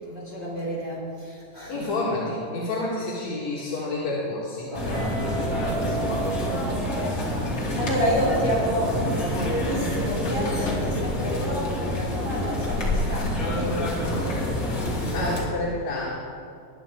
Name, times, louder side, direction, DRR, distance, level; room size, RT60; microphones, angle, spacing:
voice 1, 0.0-2.0 4.7-6.8 7.1-15.3, equal, 15° right, -7 dB, 4.0 m, -30 dB
voice 2, 1.7-4.7 7.6-7.8 15.1-16.2, left 2 dB, 55° left, -6 dB, 2.8 m, -29 dB
sound 1, 4.7-15.4, left 1 dB, 30° left, 1.8 m, -27 dB
Guitar, 4.9-7.8, right 4 dB, 45° right, 2.3 m, -35 dB
19.5 x 10.5 x 3.7 m, 2.3 s
omnidirectional pair, 4.3 m